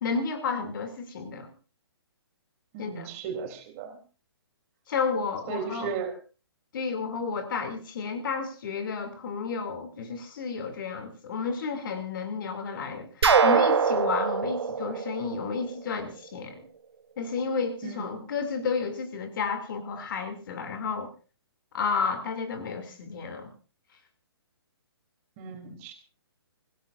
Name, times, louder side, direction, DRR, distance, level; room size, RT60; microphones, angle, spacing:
voice 1, 0.0-1.5 2.8-3.1 4.9-5.9 6.7-16.7 17.2-21.1 21.7-23.5, left 5 dB, 50° left, 6 dB, 3.0 m, -31 dB
voice 2, 2.7-4.0 5.5-6.1 17.8-18.2 25.4-25.9, right 6 dB, 30° right, 4 dB, 3.6 m, -36 dB
sound 1, 13.2-16.0, right 6 dB, 75° right, 1.5 m, -23 dB
25.5 x 16.5 x 2.7 m, 0.34 s
hypercardioid pair, 140°, 14 cm